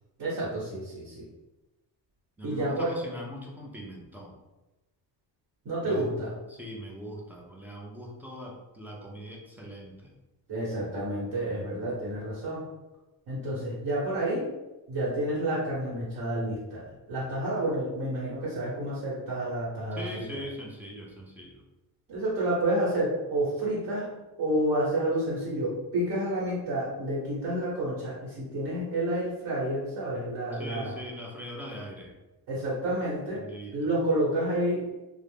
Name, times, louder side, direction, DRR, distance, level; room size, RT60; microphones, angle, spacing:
voice 1, 0.2-1.3 2.4-2.9 5.6-6.4 10.5-12.6 13.3-14.5 14.9-20.3 22.1-24.1 24.4-31.0 32.5-33.4 33.7-34.8, right 1 dB, 55° right, -7 dB, 1.1 m, -29 dB
voice 2, 2.4-4.3 5.8-6.0 6.5-10.1 19.9-21.6 30.5-32.2 33.3-33.9, equal, 5° right, -3 dB, 0.3 m, -41 dB
2.4 x 2.0 x 3.3 m, 1.1 s
cardioid pair, 135°, 43 cm